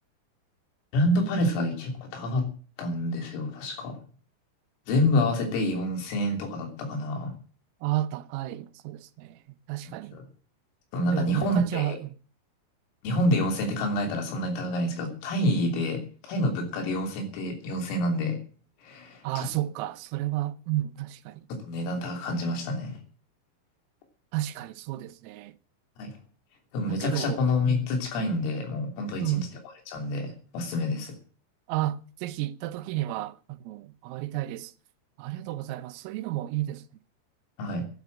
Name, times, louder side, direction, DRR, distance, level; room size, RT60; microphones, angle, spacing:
voice 1, 0.9-2.5 2.8-4.0 4.9-7.3 10.1-10.2 10.9-12.0 13.0-18.4 18.8-19.5 21.6-23.0 26.0-26.1 26.7-29.5 29.9-31.2 37.6-37.8, left 1 dB, 85° left, 5.8 m, -27 dB
voice 2, 7.8-9.4 9.7-10.2 11.1-12.1 19.2-21.4 24.3-25.6 26.9-27.4 27.7-27.9 29.2-29.5 31.7-34.7 35.2-36.9, right 15 dB, 90° right, 3.6 m, -32 dB
12.0 x 10.5 x 7.6 m
omnidirectional pair, 5.8 m